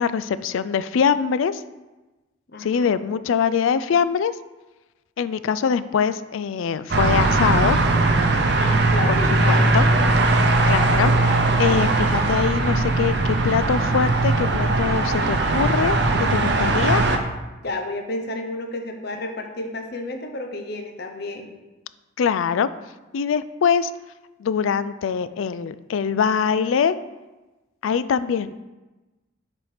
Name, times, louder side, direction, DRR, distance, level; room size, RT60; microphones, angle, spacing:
voice 1, 0.0-1.6 2.6-4.3 5.2-7.8 9.1-9.2 9.5-9.8 10.2-16.0 16.3-17.0 22.2-22.7 23.1-23.9 24.4-27.0 27.8-28.5, left 6 dB, 75° left, 14 dB, 0.3 m, -23 dB
voice 2, 2.5-2.9 8.5-9.7 17.6-21.5, left 2 dB, 50° left, 5 dB, 0.8 m, -31 dB
sound 1, 6.9-17.2, right 2 dB, 55° right, 0.6 m, -19 dB
7.1 x 4.3 x 5.0 m, 1.1 s
head